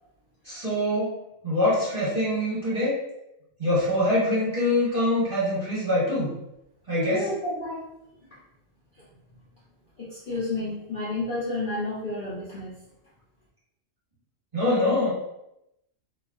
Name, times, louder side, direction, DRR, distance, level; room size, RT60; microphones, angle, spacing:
voice 1, 0.4-1.2 1.4-2.9 3.6-6.3 6.9-7.3 14.5-15.1, left 1 dB, 30° right, -9 dB, 1.5 m, -24 dB
voice 2, 6.9-7.9 8.9-9.0 10.0-12.8, left 2 dB, 50° left, -8 dB, 0.7 m, -31 dB
2.9 x 2.3 x 2.4 m, 0.84 s
omnidirectional pair, 1.4 m